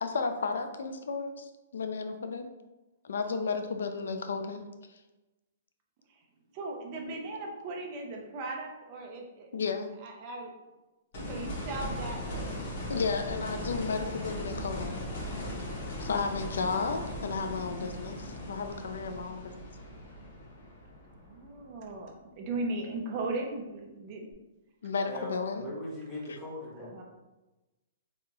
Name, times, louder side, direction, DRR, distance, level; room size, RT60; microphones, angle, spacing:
voice 1, 0.0-2.5 3.0-4.7 9.5-9.9 12.9-15.0 16.0-19.5 24.8-25.6, left 4 dB, 90° left, 7 dB, 0.5 m, -33 dB
voice 2, 6.5-9.5 10.0-10.5 11.3-12.5 21.3-24.4 26.9-27.0, right 2 dB, 30° right, 1 dB, 0.6 m, -37 dB
sound 1, 11.1-22.0 24.3-24.4, equal, 50° left, 1.4 m, -38 dB
voice 3, 25.1-27.0, left 1 dB, 15° left, -5 dB, 0.9 m, -40 dB
3.4 x 3.0 x 3.0 m, 1.1 s
hypercardioid pair, 160°, 0 cm